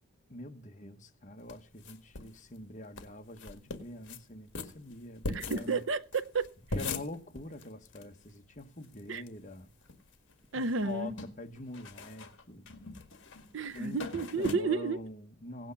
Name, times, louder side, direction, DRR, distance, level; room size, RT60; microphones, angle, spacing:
voice 1, 0.3-5.9 6.7-9.7 10.5-12.7 13.7-14.0 14.4-15.7, left 2 dB, 35° left, 1.1 m, -45 dB
sound 1, 1.5-2.4 2.6-2.7 3.0-3.1 3.4-4.2 4.5-8.1 8.3-8.4 8.6-9.3 9.7-10.3 10.6-14.5, left 3 dB, 55° left, 1.8 m, -41 dB
voice 2, 5.3-6.5 9.1-9.2 10.5-11.1 13.5-15.0, right 4 dB, 55° right, 0.7 m, -32 dB
17.0 x 9.1 x 5.8 m
head